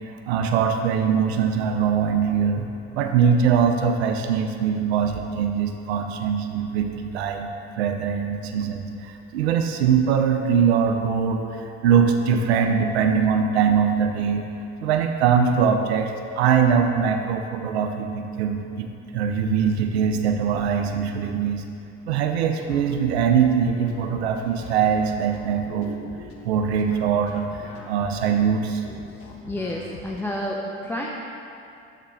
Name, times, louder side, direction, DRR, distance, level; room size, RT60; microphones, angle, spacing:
voice 1, 0.3-2.7 2.9-7.5 7.8-14.4 14.8-21.6 22.1-26.1 26.4-28.8, right 7 dB, 90° right, 5 dB, 0.5 m, -22 dB
sound 1, 22.7-30.2, left 4 dB, 60° left, 1.0 m, -41 dB
voice 2, 29.2-31.1, left 1 dB, 5° left, -2 dB, 0.6 m, -30 dB
6.6 x 3.7 x 5.7 m, 2.5 s
hypercardioid pair, 70°, 31 cm